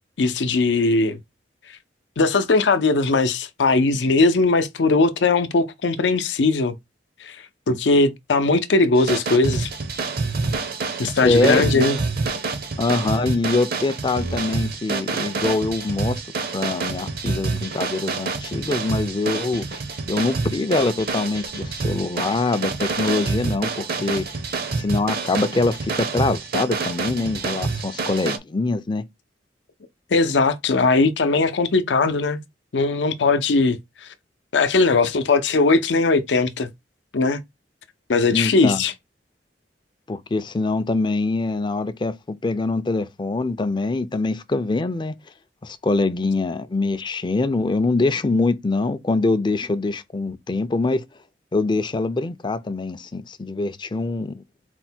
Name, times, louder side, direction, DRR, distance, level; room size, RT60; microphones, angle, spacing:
voice 1, 0.2-1.2 2.2-6.8 7.2-7.4 7.7-9.7 11.0-12.0 30.1-32.4 32.7-33.8 34.5-36.7 37.1-37.4 38.1-38.9, left 3 dB, 80° left, 0.6 m, -19 dB
sound 1, 9.0-28.4, right 4 dB, 60° right, 0.7 m, -27 dB
voice 2, 11.2-11.9 12.8-16.2 16.5-19.8 20.1-24.2 24.8-29.0 38.3-38.8 40.1-45.1 45.6-51.0 51.5-54.4, left 3 dB, 25° left, 0.4 m, -24 dB
4.3 x 2.2 x 4.3 m
head